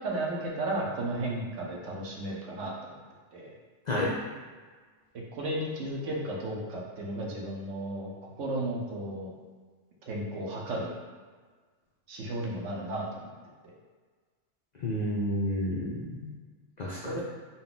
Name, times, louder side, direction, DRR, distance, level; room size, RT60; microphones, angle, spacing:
voice 1, 0.0-3.0 3.3-3.5 5.3-9.3 10.1-11.0 12.1-13.3 13.6-13.7 17.0-17.2, right 1 dB, 70° right, -2 dB, 1.1 m, -34 dB
voice 2, 14.8-16.3 16.8-17.2, left 1 dB, 65° left, -5 dB, 0.4 m, -30 dB
4.0 x 2.2 x 3.7 m, 1.5 s
omnidirectional pair, 1.4 m